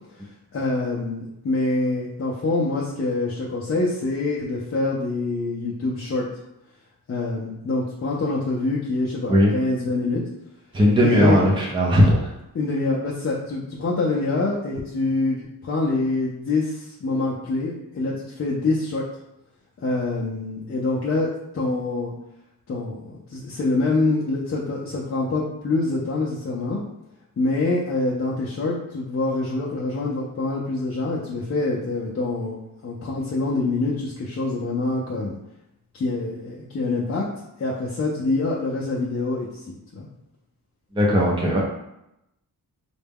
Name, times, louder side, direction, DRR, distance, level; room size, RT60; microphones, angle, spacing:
voice 1, 0.5-6.3 7.1-10.2 11.0-11.4 12.5-19.1 19.8-22.1 22.7-26.8 27.4-32.6 32.8-35.3 35.9-37.3 37.6-39.5 39.9-40.1, left 2 dB, 40° left, -4 dB, 0.5 m, -25 dB
voice 2, 10.7-12.3 40.9-41.6, equal, 15° right, -3 dB, 0.5 m, -17 dB
3.9 x 2.2 x 3.5 m, 0.87 s
wide cardioid pair, 150°, 37 cm